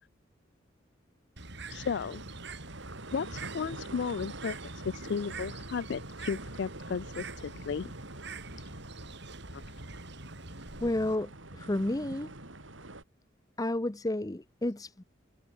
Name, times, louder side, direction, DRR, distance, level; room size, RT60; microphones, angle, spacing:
Bird, 1.4-11.2, right 3 dB, 60° right, 4.8 m, -45 dB
voice 1, 1.7-2.2 3.1-4.6 4.8-7.9 9.5-9.6, left 6 dB, 65° left, 0.4 m, -34 dB
sound 1, 1.7-13.0, right 2 dB, 85° right, 4.9 m, -46 dB
voice 2, 10.8-12.3 13.6-15.0, left 1 dB, 20° left, 0.8 m, -31 dB
open air
head